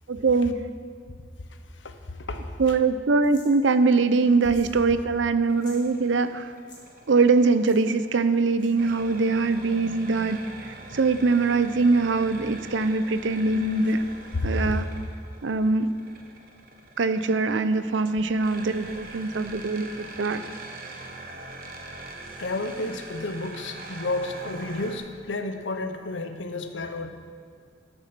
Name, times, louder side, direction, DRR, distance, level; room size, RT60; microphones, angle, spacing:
voice 1, 0.1-0.6 2.6-6.5 7.1-10.4 10.9-14.0 14.4-14.9 15.4-15.9 17.0-19.9 20.2-20.4, right 3 dB, 85° right, 11 dB, 0.6 m, -22 dB
voice 2, 1.8-2.7 14.4-14.7 22.4-27.1, left 2 dB, 85° left, 8 dB, 0.8 m, -31 dB
sound 1, 3.2-3.5 4.4-4.8 5.0-5.1 5.5-5.8 6.5-6.8 7.6-7.8 8.6-8.9, left 3 dB, 20° left, 1.9 m, -50 dB
sound 2, 5.4-25.0, right 2 dB, 50° right, 1.1 m, -43 dB
12.5 x 6.8 x 6.0 m, 2.2 s
head